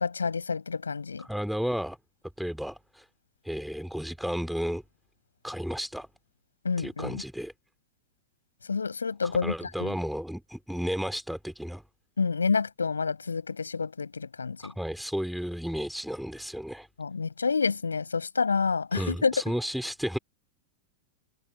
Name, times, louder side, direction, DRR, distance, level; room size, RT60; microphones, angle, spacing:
voice 1, 0.0-1.3 6.6-7.2 8.7-9.9 12.2-14.7 17.0-19.3, left 5 dB, 75° left, 6.0 m, -28 dB
voice 2, 1.2-2.0 2.4-3.1 3.4-4.8 5.4-6.1 6.8-7.5 9.2-11.8 14.6-16.9 18.9-20.2, equal, ahead, 3.4 m, -33 dB
figure-of-eight pair, 90°, 0 cm